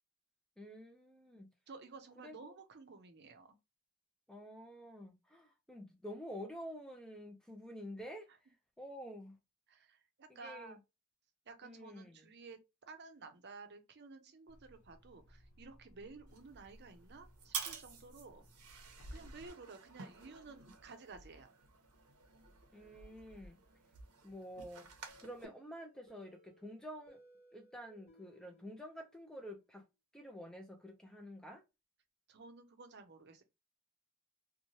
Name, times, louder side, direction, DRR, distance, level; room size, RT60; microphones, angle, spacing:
voice 1, 0.6-1.5 2.2-2.6 4.3-9.4 10.3-10.8 11.6-12.2 22.7-23.6 24.2-24.9 25.2-27.2 27.5-29.8 30.1-31.6, equal, 5° left, 0.3 m, -49 dB
voice 2, 1.7-3.6 9.7-10.8 11.5-12.6 12.9-18.4 19.1-21.5 32.3-33.4, right 4 dB, 50° right, 0.6 m, -53 dB
sound 1, 14.5-19.5, equal, 85° left, 0.8 m, -58 dB
sound 2, 16.3-25.5, right 6 dB, 85° right, 0.8 m, -50 dB
sound 3, 25.1-29.8, equal, 25° left, 1.3 m, -65 dB
3.0 x 2.2 x 2.6 m
head